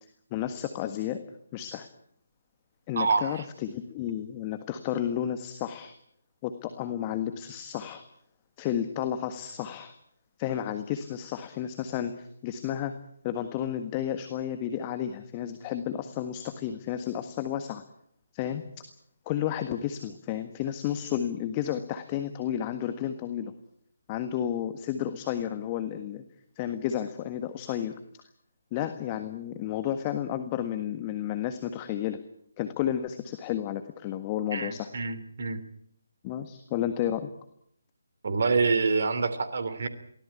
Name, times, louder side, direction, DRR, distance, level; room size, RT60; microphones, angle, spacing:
voice 1, 0.3-1.2 1.5-1.9 2.9-5.9 6.4-8.0 8.6-9.9 10.4-12.9 13.2-17.8 18.3-18.6 19.2-23.5 24.1-26.2 26.5-28.0 28.7-32.2 32.6-34.9 36.2-37.3, left 10 dB, 20° left, 9 dB, 1.6 m, -32 dB
voice 2, 3.0-3.3 34.5-35.6 38.2-39.9, right 4 dB, 50° right, 11 dB, 2.9 m, -26 dB
23.5 x 17.5 x 8.6 m, 0.67 s
figure-of-eight pair, 145°, 0 cm